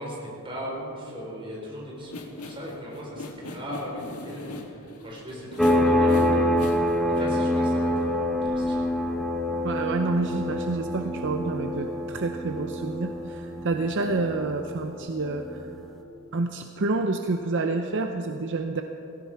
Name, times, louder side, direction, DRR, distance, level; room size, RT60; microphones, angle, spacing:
voice 1, 0.0-6.5 7.0-8.9, equal, 25° right, -3 dB, 4.4 m, -37 dB
sound 1, 2.0-7.2, left 1 dB, 85° left, 1.6 m, -39 dB
sound 2, 5.6-15.9, left 1 dB, ahead, 1.0 m, -26 dB
voice 2, 9.6-15.7 16.3-18.8, right 3 dB, 55° right, 5 dB, 0.7 m, -28 dB
18.0 x 16.5 x 4.7 m, 3.0 s
head